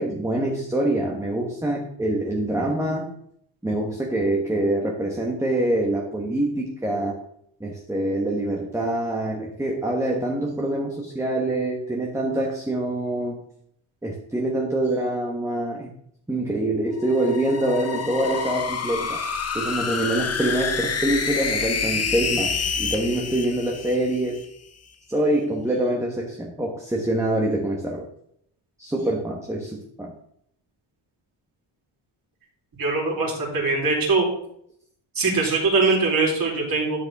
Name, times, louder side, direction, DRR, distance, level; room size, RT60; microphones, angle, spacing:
voice 1, 0.0-3.1 3.6-7.2 7.6-13.4 14.0-15.9 16.3-19.2 19.5-24.4 25.1-28.0 28.8-30.1, right 1 dB, 5° right, -1 dB, 1.3 m, -25 dB
sound 1, 17.0-24.5, left 5 dB, 35° left, 1.0 m, -28 dB
voice 2, 32.8-34.3 35.2-37.0, right 3 dB, 45° right, -2 dB, 4.2 m, -22 dB
12.5 x 6.7 x 3.6 m, 0.71 s
cardioid pair, 125°, 47 cm